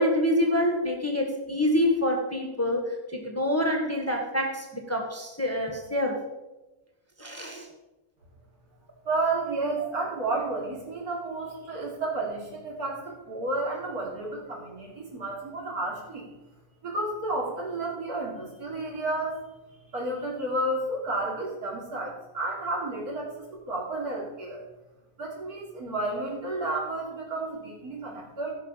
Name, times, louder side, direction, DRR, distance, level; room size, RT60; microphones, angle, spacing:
voice 1, 0.0-2.8 3.1-6.2 7.2-7.7, left 1 dB, 10° left, 1 dB, 1.4 m, -26 dB
voice 2, 9.1-16.3 16.8-19.4 19.9-24.6 25.2-28.5, right 2 dB, 80° right, -2 dB, 3.6 m, -31 dB
16.0 x 6.0 x 5.7 m, 1.0 s
omnidirectional pair, 1.6 m